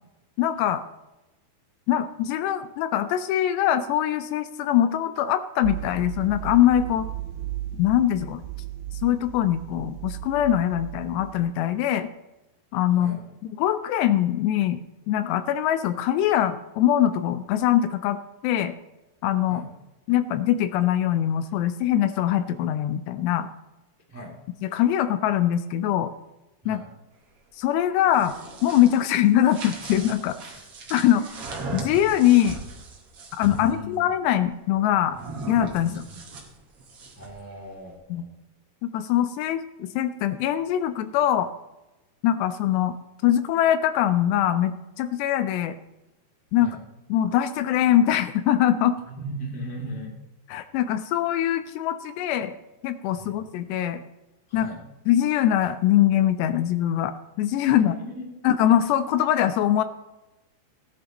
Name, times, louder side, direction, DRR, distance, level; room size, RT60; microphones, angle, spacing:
voice 1, 0.4-0.8 1.9-7.1 7.8-8.4 8.9-12.1 12.7-13.2 13.6-14.8 15.1-18.8 19.2-19.6 20.1-23.5 24.6-26.1 26.7-26.8 27.6-28.4 28.6-30.4 30.9-31.4 31.7-32.6 33.3-35.2 35.5-35.9 38.1-38.2 38.8-41.5 42.2-42.9 43.2-45.8 46.5-46.8 47.1-49.0 50.5-52.6 52.8-54.0 54.5-54.7 55.1-57.9 58.4-59.8, left 11 dB, 80° left, 11 dB, 2.6 m, -22 dB
sound 1, 5.6-11.5, right 14 dB, 85° right, 2.2 m, -36 dB
voice 2, 12.9-13.2 19.5-19.7 24.1-24.3 26.6-26.9 33.5-33.9 35.8-36.2 37.1-38.3 46.6-46.8 49.1-50.1 53.1-53.3 54.5-54.8 57.7-58.3, equal, 10° right, -1 dB, 0.8 m, -38 dB
sound 2, 27.9-33.7 35.1-37.4, right 3 dB, 45° right, 2.0 m, -38 dB
17.5 x 10.5 x 3.0 m, 1.0 s
omnidirectional pair, 5.1 m